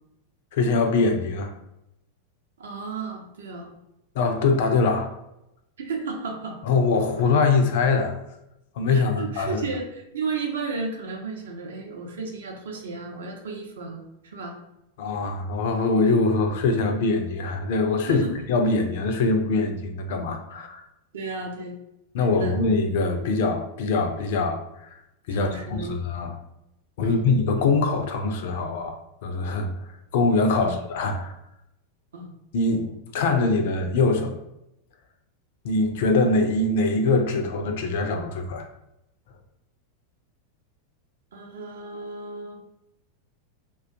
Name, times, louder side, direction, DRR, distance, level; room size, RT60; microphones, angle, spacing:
voice 1, 0.5-1.5 4.2-5.1 6.6-8.1 8.8-9.6 15.0-20.8 22.1-24.9 25.3-26.3 27.0-29.0 29.2-29.7 30.1-31.3 32.5-34.4 35.6-38.7, left 3 dB, 50° left, 6 dB, 0.3 m, -23 dB
voice 2, 2.6-3.7 5.8-6.5 8.9-14.6 18.1-18.4 21.1-21.8 22.3-22.6 25.3-26.0 27.0-27.2 30.6-30.8 32.1-32.3 41.3-42.6, right 4 dB, 65° right, 1 dB, 0.5 m, -33 dB
2.3 x 2.2 x 2.6 m, 0.86 s
figure-of-eight pair, 90°, 0 cm